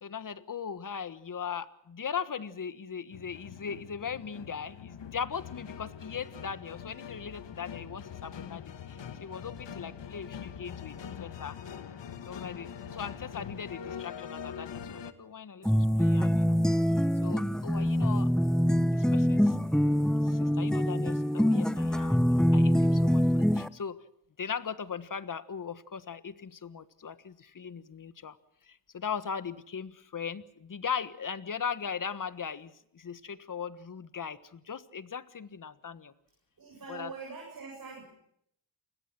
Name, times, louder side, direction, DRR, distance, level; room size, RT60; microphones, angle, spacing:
voice 1, 0.0-11.6 12.3-16.6 17.2-18.3 18.9-19.8 20.2-22.2 22.5-24.0 24.4-28.4 28.6-36.1 36.9-37.1, left 7 dB, 45° left, 14 dB, 1.5 m, -39 dB
sound 1, 3.1-15.1, left 8 dB, 65° left, 1.8 m, -43 dB
sound 2, 15.7-23.7, equal, ahead, 0.9 m, -25 dB
voice 2, 36.6-38.1, right 4 dB, 50° right, 0 dB, 7.9 m, -43 dB
28.5 x 21.0 x 6.0 m, 0.73 s
cardioid pair, 85°, 46 cm